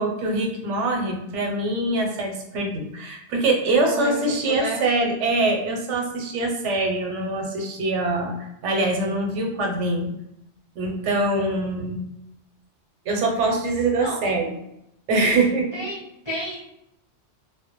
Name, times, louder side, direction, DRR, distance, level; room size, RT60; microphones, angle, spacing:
voice 1, 0.0-10.1 10.8-12.0 13.1-14.5 15.1-15.7, right 2 dB, 85° right, 2 dB, 0.9 m, -24 dB
voice 2, 3.8-4.8 14.0-14.2 15.7-16.0 16.2-16.7, equal, 30° left, -7 dB, 0.6 m, -30 dB
2.1 x 2.1 x 2.8 m, 0.82 s
omnidirectional pair, 1.2 m